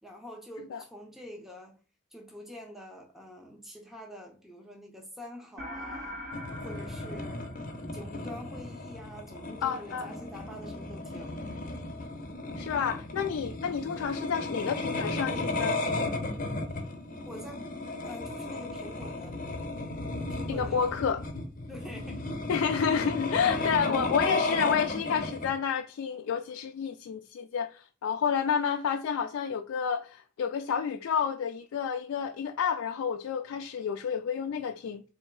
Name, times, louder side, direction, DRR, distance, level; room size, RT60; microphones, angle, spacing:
voice 1, 0.0-1.8 2.1-6.2 6.6-7.5 7.9-11.4 17.3-17.7 18.0-19.4 20.2-21.0 21.7-22.4, equal, ahead, 0.6 m, -46 dB
sound 1, 5.6-8.2, left 1 dB, 70° right, 1.9 m, -42 dB
sound 2, 6.3-25.5, left 2 dB, 40° left, 0.7 m, -34 dB
voice 2, 9.6-10.1 12.6-15.8 20.5-21.2 22.5-35.0, left 7 dB, 90° left, 0.3 m, -30 dB
3.4 x 2.7 x 4.5 m
head